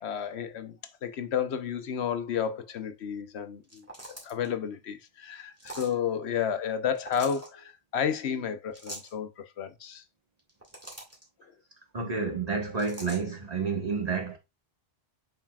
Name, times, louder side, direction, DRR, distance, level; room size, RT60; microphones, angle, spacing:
voice 1, 0.0-10.0, left 8 dB, 90° left, 1.0 m, -32 dB
sound 1, 3.6-4.5 5.6-6.0 6.9-7.5 8.7-9.1 10.4-11.2 12.8-13.2, right 1 dB, 15° right, 1.8 m, -43 dB
voice 2, 11.9-14.4, right 4 dB, 40° right, 1.6 m, -30 dB
7.3 x 5.6 x 2.3 m
omnidirectional pair, 1.1 m